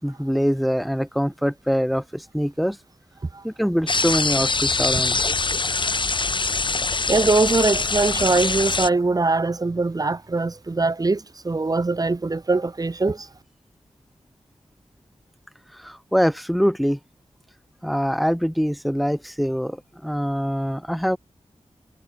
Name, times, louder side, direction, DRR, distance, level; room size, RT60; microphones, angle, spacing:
voice 1, 0.0-2.8 3.4-5.3 15.7-17.0 17.8-19.8 20.0-21.2, equal, ahead, 4.0 m, -24 dB
sound 1, 3.9-8.9, left 3 dB, 45° left, 1.6 m, -23 dB
voice 2, 7.1-13.3, right 3 dB, 35° right, 1.1 m, -22 dB
wide cardioid pair, 90°, 11 cm